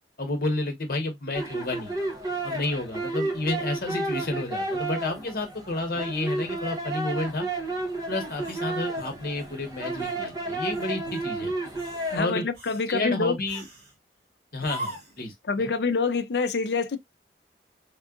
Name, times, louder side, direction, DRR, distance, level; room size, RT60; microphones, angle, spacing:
voice 1, 0.2-2.0 2.4-7.5 8.1-11.5 12.1-12.4 12.9-13.6 14.5-15.3 15.6-15.7, left 2 dB, 55° left, 1.0 m, -30 dB
sound 1, 1.3-12.2, right 2 dB, 20° right, 0.6 m, -32 dB
sound 2, 8.4-9.6 10.0-10.2 10.7-11.2 11.7-12.2 12.5-12.9 13.5-13.9 14.6-15.3, right 1 dB, 70° right, 1.4 m, -41 dB
voice 2, 12.1-13.3 15.5-17.0, left 4 dB, 70° left, 0.4 m, -26 dB
3.6 x 2.4 x 2.3 m
head